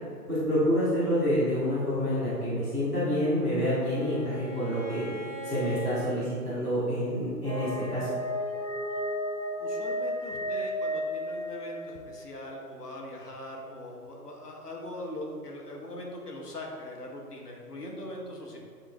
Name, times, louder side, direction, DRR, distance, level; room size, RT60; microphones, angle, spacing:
voice 1, 0.3-5.1 5.4-8.1, equal, 5° right, -15 dB, 1.0 m, -28 dB
Bowed string instrument, 2.9-6.1, right 1 dB, 40° left, 1.4 m, -41 dB
sound 1, 7.4-12.1, equal, 20° left, 0.8 m, -33 dB
voice 2, 9.6-18.6, left 1 dB, 70° left, -1 dB, 1.3 m, -41 dB
7.7 x 3.8 x 3.4 m, 2.2 s
figure-of-eight pair, 140°, 48 cm